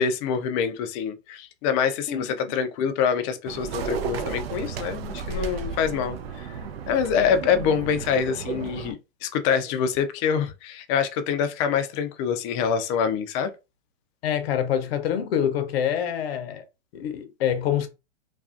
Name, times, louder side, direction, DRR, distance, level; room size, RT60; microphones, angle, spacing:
voice 1, 0.0-6.6 6.9-9.0 9.2-13.5, left 7 dB, 30° left, 0.4 m, -25 dB
sound 1, 3.4-8.9, right 6 dB, 65° right, 0.5 m, -33 dB
voice 2, 14.2-16.6 16.9-17.9, left 9 dB, 60° left, 0.7 m, -26 dB
2.4 x 2.3 x 2.4 m
hypercardioid pair, 120°, 33 cm